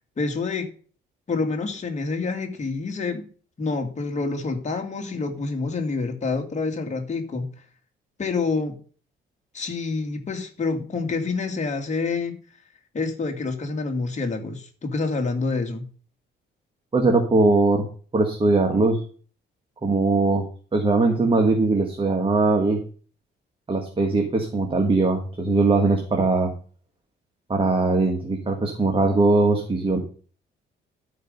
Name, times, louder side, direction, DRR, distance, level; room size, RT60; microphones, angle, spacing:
voice 1, 0.2-0.7 1.3-3.2 3.6-7.5 8.2-8.8 9.5-12.4 12.9-15.9, left 4 dB, 35° left, 3 dB, 2.2 m, -27 dB
voice 2, 16.9-17.9 18.1-19.0 19.8-20.4 20.7-22.8 23.7-26.5 27.5-30.0, right 3 dB, 25° right, 2 dB, 1.8 m, -20 dB
11.5 x 5.2 x 5.4 m, 0.41 s
cardioid pair, 90°, 20 cm